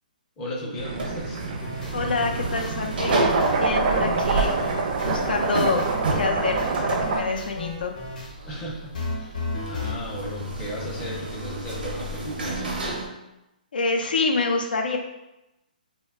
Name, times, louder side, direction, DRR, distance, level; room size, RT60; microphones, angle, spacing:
voice 1, 0.4-1.4 8.4-12.7, equal, 15° left, -4 dB, 0.5 m, -35 dB
sound 1, 0.8-7.2, right 3 dB, 45° right, 0.4 m, -26 dB
sound 2, 1.0-13.1, right 2 dB, 80° right, 0.6 m, -32 dB
sound 3, 1.6-1.9 2.6-6.0 6.4-8.3 8.9-10.0, left 2 dB, 50° left, 0.7 m, -34 dB
voice 2, 1.9-3.2 3.6-4.5 5.0-8.0 13.7-15.0, left 3 dB, 80° left, 3 dB, 0.4 m, -27 dB
2.2 x 2.1 x 3.3 m, 0.93 s
hypercardioid pair, 160°, 5 cm